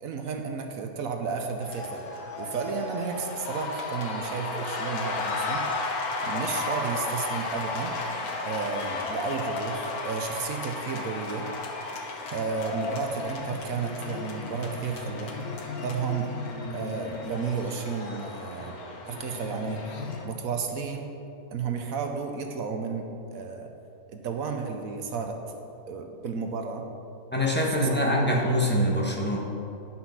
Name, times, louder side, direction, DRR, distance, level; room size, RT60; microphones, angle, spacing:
voice 1, 0.0-2.0 2.4-5.7 6.2-7.9 8.4-11.5 12.3-15.3 15.8-16.3 16.7-18.8 19.1-19.8 20.2-21.1 21.5-23.1 23.3-23.7 24.1-25.4 25.9-26.8 27.6-28.3, right 5 dB, 65° right, 4 dB, 1.1 m, -32 dB
sound 1, 1.6-20.3, left 3 dB, 75° left, 1.4 m, -34 dB
voice 2, 27.3-29.4, equal, 5° left, -3 dB, 1.2 m, -24 dB
9.7 x 5.9 x 5.7 m, 2.8 s
omnidirectional pair, 1.6 m